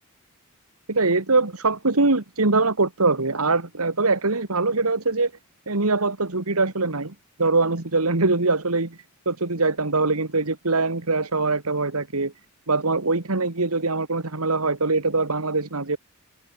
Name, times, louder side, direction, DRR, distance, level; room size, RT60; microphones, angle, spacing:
voice 1, 0.9-5.3 5.7-7.1 7.4-9.0 9.3-12.3 12.7-16.0, right 3 dB, 85° right, 2.2 m, -23 dB
open air
head